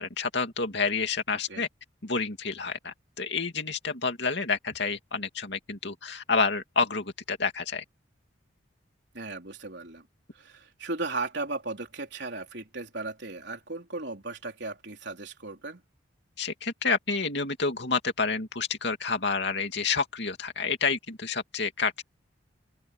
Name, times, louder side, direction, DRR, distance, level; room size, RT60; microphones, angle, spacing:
voice 1, 0.0-1.7 2.0-7.8 16.4-22.0, left 4 dB, 60° left, 2.8 m, -29 dB
voice 2, 9.1-10.0 10.3-15.8, right 3 dB, 60° right, 4.2 m, -36 dB
open air
head